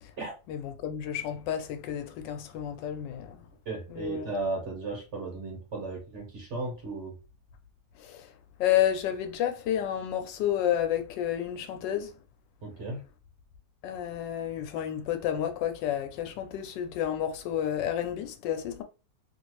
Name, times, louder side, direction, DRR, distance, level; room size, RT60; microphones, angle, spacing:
voice 1, 0.5-3.5 3.9-4.3 8.0-8.3 8.6-12.2 13.8-18.8, left 10 dB, 85° left, 1.3 m, -30 dB
voice 2, 3.6-7.1 12.6-13.0, right 3 dB, 45° right, 1.3 m, -35 dB
2.9 x 2.6 x 3.0 m
omnidirectional pair, 1.9 m